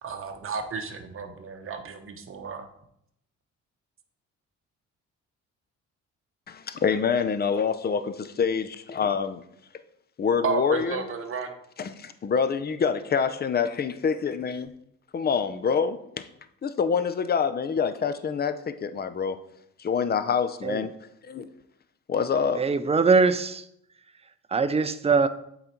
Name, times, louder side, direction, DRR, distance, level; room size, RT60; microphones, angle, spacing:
voice 1, 0.0-2.7 10.4-11.6, right 5 dB, 45° right, 6 dB, 1.0 m, -32 dB
voice 2, 6.5-9.4 10.2-11.0 11.8-14.7 15.1-16.2 16.6-19.4 19.8-20.9 21.2-21.5 22.1-22.6, left 6 dB, 30° left, 12 dB, 0.6 m, -26 dB
voice 3, 22.6-23.7 24.5-25.3, right 4 dB, 20° right, 12 dB, 0.5 m, -22 dB
8.0 x 4.0 x 4.5 m, 0.75 s
cardioid pair, 90°, 30 cm